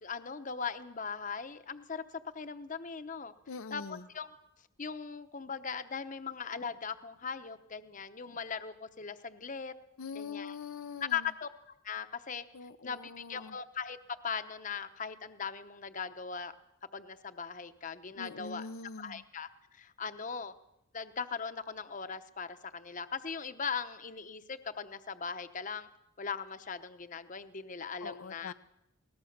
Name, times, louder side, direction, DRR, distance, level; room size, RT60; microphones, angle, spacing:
voice 1, 0.0-2.0 2.3-3.3 3.7-4.3 4.8-9.7 10.1-10.5 11.1-11.5 11.8-14.0 14.2-16.5 16.9-18.7 19.0-20.5 20.9-25.9 26.2-28.5, left 6 dB, 40° left, 0.9 m, -39 dB
voice 2, 3.5-4.1 10.0-11.3 12.5-13.6 18.1-19.2 28.0-28.5, left 4 dB, 85° left, 0.7 m, -43 dB
21.5 x 19.0 x 6.6 m
head